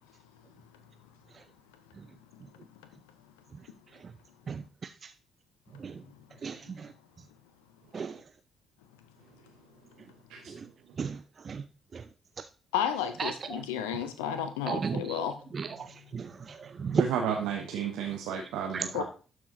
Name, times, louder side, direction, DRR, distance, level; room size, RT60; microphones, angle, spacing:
voice 1, 4.5-5.1 5.7-6.0 6.4-6.9 7.9-8.2 10.5-10.7 11.0-11.6 11.9-12.1 12.4-12.5 13.2-13.6 14.7-15.2 15.5-17.0 18.7-18.8, right 6 dB, 45° right, 10 dB, 0.4 m, -34 dB
voice 2, 12.7-15.4 18.9-19.0, left 9 dB, 80° left, 11 dB, 0.5 m, -32 dB
voice 3, 16.9-19.0, right 7 dB, 70° right, 3 dB, 0.8 m, -32 dB
12.0 x 4.8 x 2.7 m, 0.36 s
figure-of-eight pair, 40°, 0 cm